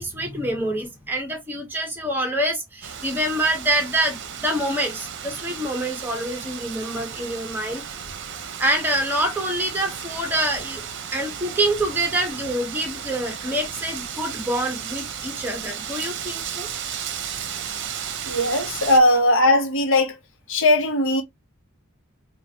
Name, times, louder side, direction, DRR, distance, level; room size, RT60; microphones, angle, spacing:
voice 1, 0.0-7.8 8.6-10.8 11.1-16.7 17.6-17.7, right 1 dB, 10° right, 1.1 m, -26 dB
Wind, 2.8-19.0, right 8 dB, 60° right, 0.7 m, -34 dB
voice 2, 18.3-20.1 20.5-21.2, left 1 dB, 65° left, 1.1 m, -18 dB
4.7 x 2.5 x 2.9 m
head